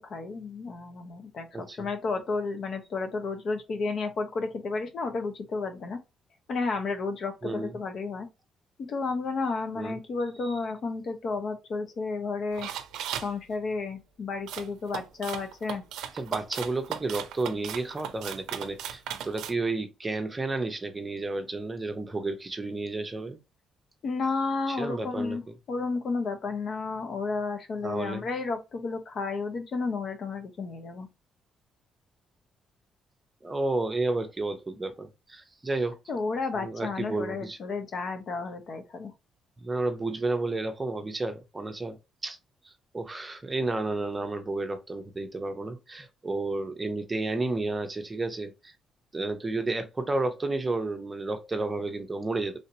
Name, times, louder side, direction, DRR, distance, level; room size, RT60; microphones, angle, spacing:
voice 1, 0.0-6.0 6.5-8.3 8.8-12.7 13.2-15.8 24.0-25.4 25.7-31.1 36.1-39.1, left 4 dB, 60° left, 0.8 m, -32 dB
voice 2, 1.5-1.9 7.4-7.8 9.8-10.0 16.1-23.4 24.7-25.4 27.8-28.3 33.4-35.9 36.5-37.6 39.6-42.0 42.2-42.4 42.6-48.7 49.1-52.6, right 2 dB, 20° right, 0.7 m, -31 dB
sound 1, 12.5-13.3 14.5-19.5, right 9 dB, 90° right, 0.5 m, -36 dB
3.3 x 2.8 x 2.7 m
cardioid pair, 90°, 0 cm